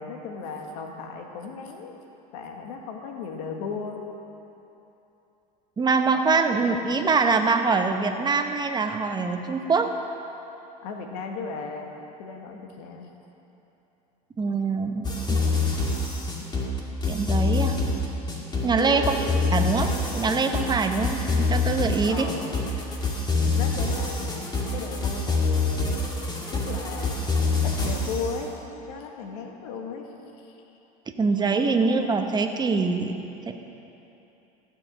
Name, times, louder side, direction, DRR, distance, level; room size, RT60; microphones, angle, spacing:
voice 1, 0.0-2.0 2.3-4.0 10.8-11.9 12.2-13.1 18.9-19.1 22.1-22.5 23.5-26.1 26.5-27.3 27.6-28.5 28.9-30.1 30.5-30.6 31.8-32.1, left 5 dB, 75° left, 2 dB, 1.7 m, -36 dB
voice 2, 5.8-9.9 14.4-15.4 17.1-17.8 18.6-19.2 19.5-22.3 31.1-33.1 33.5-33.6, right 4 dB, 20° right, 6 dB, 1.1 m, -24 dB
sound 1, 15.0-28.3, left 3 dB, 20° left, 2.1 m, -26 dB
14.5 x 7.6 x 6.3 m, 3.0 s
hypercardioid pair, 95°, 20 cm